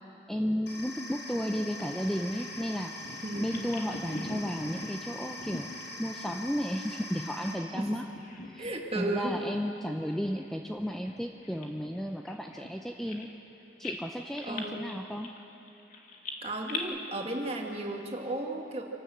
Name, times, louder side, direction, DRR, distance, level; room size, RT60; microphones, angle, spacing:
voice 1, 0.3-2.9 3.4-5.7 6.0-8.0 8.4-13.3 13.8-15.3, equal, ahead, 3 dB, 0.5 m, -33 dB
sound 1, 0.7-7.5, left 2 dB, 70° left, 5.1 m, -43 dB
Bird vocalization bird call bird song, 1.8-7.8 8.0-9.0 9.3-9.5 10.1-13.5 13.8-16.8, left 3 dB, 40° left, 1.6 m, -44 dB
voice 2, 8.6-9.3 14.4-14.8 16.4-18.8, right 2 dB, 30° right, 1 dB, 1.9 m, -34 dB
27.0 x 12.5 x 7.8 m, 3.0 s
head